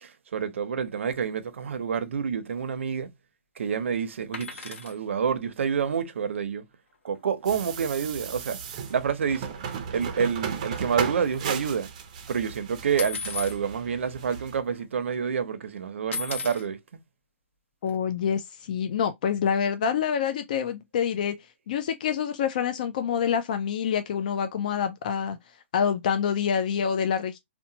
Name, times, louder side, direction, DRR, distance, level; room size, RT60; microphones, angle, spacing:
voice 1, 0.0-3.1 3.6-6.6 7.0-8.6 8.9-9.5 9.9-11.9 12.3-16.8, right 6 dB, 80° right, 0.6 m, -28 dB
sound 1, 4.3-5.0 7.2-7.3 7.5-7.7 7.9-8.1 8.8-9.0 9.4-9.9 10.1-11.6 13.0-13.6 14.3-14.4 14.7-15.2 16.1-16.7 17.9-18.0, left 5 dB, 80° left, 0.8 m, -36 dB
sound 2, 7.4-14.6, right 7 dB, 35° right, 0.5 m, -35 dB
voice 2, 17.8-21.4 21.7-25.4 25.7-27.4, left 7 dB, 40° left, 0.3 m, -26 dB
2.8 x 2.1 x 2.6 m
hypercardioid pair, 175°, 7 cm